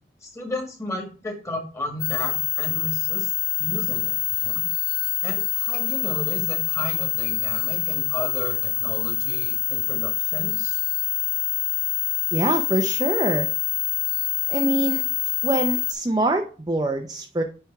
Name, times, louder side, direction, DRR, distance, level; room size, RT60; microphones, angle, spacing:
voice 1, 0.2-3.3 3.6-4.7 5.2-10.8, left 1 dB, 15° left, 1 dB, 1.7 m, -34 dB
sound 1, 2.0-15.9, left 17 dB, 80° left, 1.0 m, -25 dB
voice 2, 12.3-13.5 14.5-15.0 15.4-17.4, right 2 dB, 20° right, 3 dB, 0.5 m, -24 dB
9.3 x 3.3 x 4.6 m, 0.36 s
head